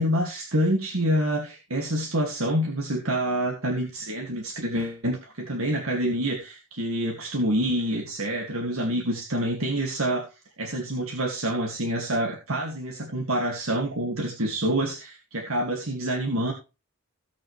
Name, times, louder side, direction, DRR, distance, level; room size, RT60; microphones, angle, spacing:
voice 1, 0.0-10.3 10.6-16.5, right 1 dB, 85° right, 1 dB, 2.2 m, -27 dB
18.0 x 6.1 x 3.2 m, 0.28 s
head